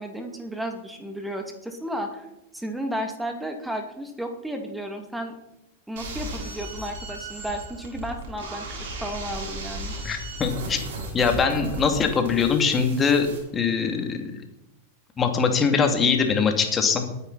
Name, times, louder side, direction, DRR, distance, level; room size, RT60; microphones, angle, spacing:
voice 1, 0.0-2.3 2.5-5.3 5.9-9.9, equal, 5° right, 4 dB, 2.6 m, -33 dB
sound 1, 6.0-13.4, right 2 dB, 55° right, 6.6 m, -36 dB
voice 2, 10.0-10.8 11.1-13.3 13.5-14.2 15.2-17.0, left 5 dB, 20° left, 5 dB, 2.7 m, -22 dB
21.5 x 10.0 x 4.3 m, 0.88 s
figure-of-eight pair, 90°, 0 cm